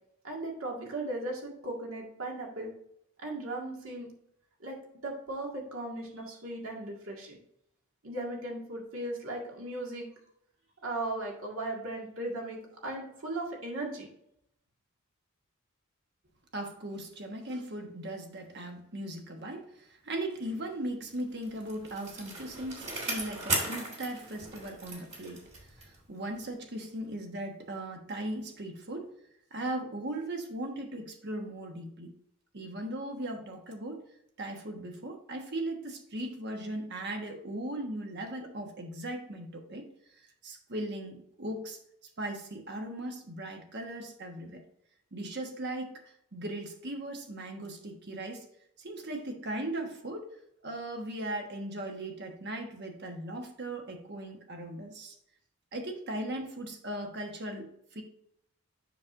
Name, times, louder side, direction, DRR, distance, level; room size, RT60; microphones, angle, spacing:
voice 1, 0.2-2.7 3.2-4.1 4.6-4.8 5.0-7.4 8.0-10.1 10.8-14.1, right 2 dB, 65° right, -1 dB, 1.9 m, -37 dB
voice 2, 16.5-29.1 29.5-32.2 32.5-34.0 34.4-39.9 40.4-41.8 42.2-44.6 45.1-46.0 46.3-48.5 48.8-50.3 50.6-55.2 55.7-58.0, right 1 dB, 50° right, 3 dB, 1.2 m, -38 dB
Bicycle, 21.2-26.1 26.4-26.5, right 2 dB, 30° right, 1.9 m, -37 dB
7.3 x 6.0 x 2.6 m, 0.74 s
head